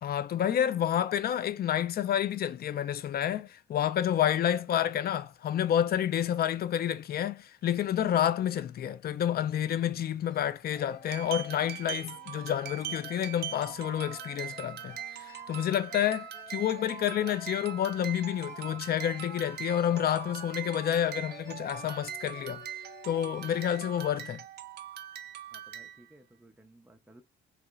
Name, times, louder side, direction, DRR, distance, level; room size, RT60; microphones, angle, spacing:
voice 1, 0.0-22.6 23.0-24.4, left 10 dB, 50° left, 0.4 m, -29 dB
sound 1, 9.4-9.5 9.8-9.9 10.3-10.4 10.7-24.0, left 6 dB, 70° left, 1.1 m, -51 dB
sound 2, 11.1-26.1, right 10 dB, 55° right, 0.5 m, -42 dB
voice 2, 25.5-27.2, right 1 dB, 5° right, 0.5 m, -57 dB
3.0 x 2.9 x 2.3 m
cardioid pair, 90°, 20 cm